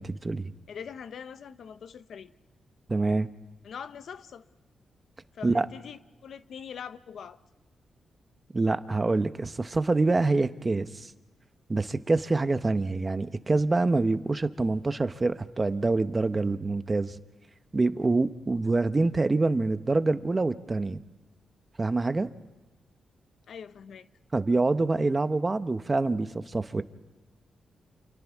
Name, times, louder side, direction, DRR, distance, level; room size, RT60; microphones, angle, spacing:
voice 1, 0.0-0.5 2.9-3.3 5.4-5.7 8.5-11.1 11.7-17.2 17.7-21.0 21.8-22.3 24.3-26.8, right 3 dB, 25° right, 11 dB, 0.8 m, -26 dB
voice 2, 0.7-2.3 3.6-4.4 5.3-7.4 23.5-24.1, left 7 dB, 70° left, 12 dB, 0.8 m, -42 dB
29.0 x 28.0 x 3.6 m, 1.1 s
cardioid pair, 115°, 0 cm